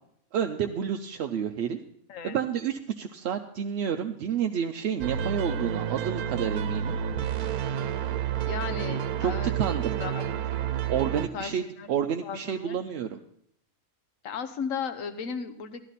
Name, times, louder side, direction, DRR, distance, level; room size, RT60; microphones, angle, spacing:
voice 1, 0.3-1.8 2.2-7.0 8.9-10.0 10.9-13.2, right 8 dB, 65° right, 5 dB, 0.7 m, -30 dB
sound 1, 5.0-11.3, right 9 dB, 85° right, 1.2 m, -30 dB
voice 2, 8.4-10.2 11.3-11.5 11.8-11.9 12.2-12.8 14.2-15.8, left 6 dB, 65° left, 9 dB, 1.3 m, -35 dB
12.5 x 12.5 x 4.1 m, 0.73 s
omnidirectional pair, 1.5 m